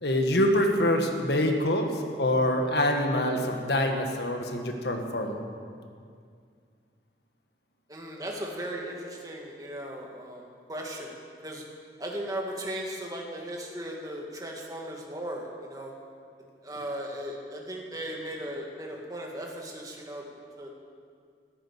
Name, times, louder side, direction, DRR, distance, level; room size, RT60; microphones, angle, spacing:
voice 1, 0.0-1.9 2.2-5.4, left 1 dB, 70° left, 3 dB, 1.7 m, -25 dB
voice 2, 7.9-11.1 11.4-11.6 12.0-15.9 16.6-20.2 20.6-20.7, right 1 dB, 20° right, -1 dB, 2.0 m, -37 dB
13.0 x 11.0 x 8.5 m, 2.2 s
head